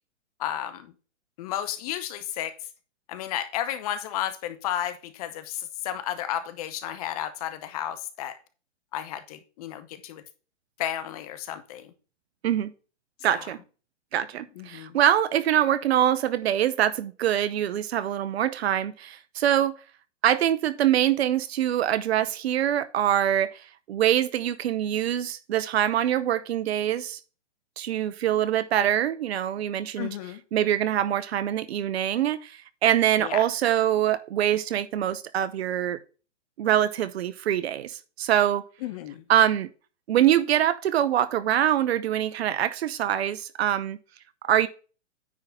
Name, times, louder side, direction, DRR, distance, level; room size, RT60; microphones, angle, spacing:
voice 1, 0.4-0.9 1.4-2.5 3.1-8.4 8.9-10.2 10.8-11.9 13.3-13.5 14.6-15.0 30.0-30.4 33.2-33.4 38.8-39.2, left 11 dB, 30° left, 0.7 m, -33 dB
voice 2, 13.2-13.6 14.1-19.8 20.2-23.5 23.9-27.2 27.8-30.1 30.5-32.5 32.8-36.0 36.6-37.9 38.2-38.7 39.3-39.7 40.1-44.0 44.4-44.7, right 11 dB, 55° right, 0.9 m, -24 dB
9.6 x 3.8 x 5.6 m
hypercardioid pair, 145°, 37 cm